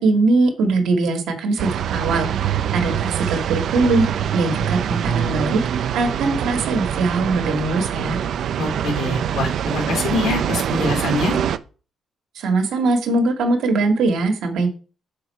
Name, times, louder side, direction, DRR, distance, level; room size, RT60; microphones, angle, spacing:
voice 1, 0.0-4.1 4.3-5.6 5.9-8.2 12.3-14.7, right 3 dB, 85° right, 4 dB, 1.5 m, -21 dB
sound 1, 1.6-11.6, right 9 dB, 70° right, 0.4 m, -24 dB
voice 2, 8.6-11.4, left 3 dB, 80° left, 4 dB, 1.7 m, -24 dB
6.3 x 4.5 x 4.1 m, 0.37 s
cardioid pair, 90°, 0 cm